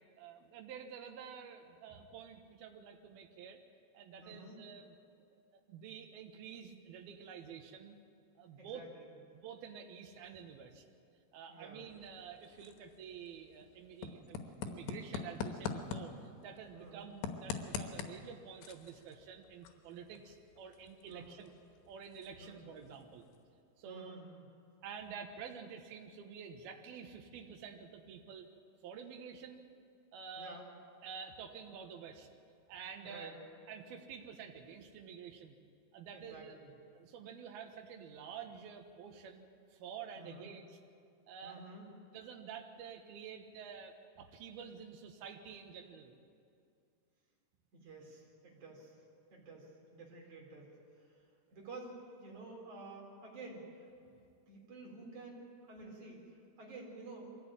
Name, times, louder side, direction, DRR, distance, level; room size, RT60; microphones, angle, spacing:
voice 1, 0.2-3.6 3.9-4.9 5.3-8.0 8.4-8.9 9.3-10.8 11.3-21.5 21.9-23.3 23.8-24.2 24.8-28.5 28.8-29.6 30.1-30.6 31.0-32.3 32.7-33.3 33.7-35.6 35.9-36.6 36.9-40.7 41.3-41.6 42.1-46.1, right 7 dB, 70° right, 4 dB, 3.1 m, -49 dB
voice 2, 4.2-4.6 8.6-9.2 11.5-11.9 16.7-17.1 21.1-21.5 22.4-22.7 23.8-24.5 30.4-30.7 33.0-33.4 36.1-36.7 40.2-40.5 41.4-41.9 47.7-49.0 49.3-53.9 54.5-57.3, right 2 dB, 45° right, -2 dB, 5.3 m, -51 dB
sound 1, 11.9-23.6, left 6 dB, 85° left, 3.4 m, -46 dB
23.0 x 15.5 x 9.0 m, 2.4 s
omnidirectional pair, 4.9 m